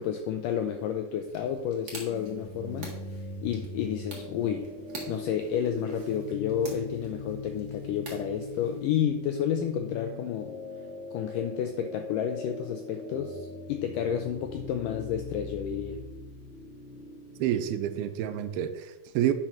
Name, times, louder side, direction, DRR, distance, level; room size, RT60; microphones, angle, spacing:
voice 1, 0.0-3.0 3.4-4.7 5.1-10.5 11.1-16.0, left 9 dB, 85° left, 6 dB, 1.9 m, -31 dB
sound 1, 1.3-9.0, right 3 dB, 50° right, 1.2 m, -47 dB
sound 2, 2.1-18.1, left 3 dB, 70° left, 0.6 m, -41 dB
voice 2, 17.4-19.3, right 11 dB, 85° right, 9 dB, 2.6 m, -28 dB
9.1 x 5.1 x 5.6 m, 1.1 s
omnidirectional pair, 4.4 m